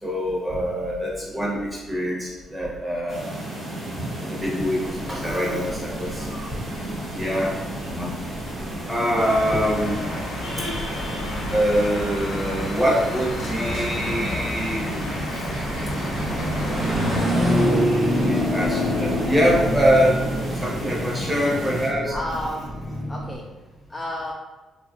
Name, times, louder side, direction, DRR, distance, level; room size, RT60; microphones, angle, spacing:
voice 1, 0.0-3.3 4.2-6.5 7.2-7.5 7.8-8.1 8.7-10.0 11.5-14.9 15.6-20.2 20.6-22.1, equal, 10° right, -5 dB, 1.0 m, -25 dB
sound 1, 3.1-21.9, right 1 dB, 50° right, 1.2 m, -33 dB
sound 2, 4.4-23.4, equal, 35° right, 1.0 m, -28 dB
voice 2, 7.3-7.8 22.1-22.7 23.1-23.4 23.9-24.3, left 1 dB, 20° left, -2 dB, 0.3 m, -31 dB
sound 3, 9.2-17.2, left 2 dB, 80° left, 0.8 m, -32 dB
3.1 x 2.4 x 2.5 m, 1.2 s
cardioid pair, 90°, 0 cm